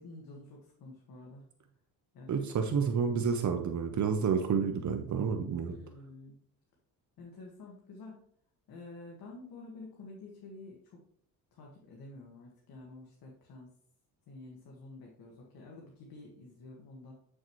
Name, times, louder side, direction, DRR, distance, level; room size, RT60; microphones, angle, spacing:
voice 1, 0.0-1.4 2.1-2.7 5.6-6.3 7.2-8.2 8.7-11.0 11.5-13.7 14.3-17.1, left 2 dB, 70° left, -1 dB, 1.8 m, -49 dB
voice 2, 2.3-5.7, right 6 dB, 50° right, 5 dB, 0.9 m, -29 dB
8.9 x 6.4 x 3.1 m, 0.63 s
cardioid pair, 110°, 37 cm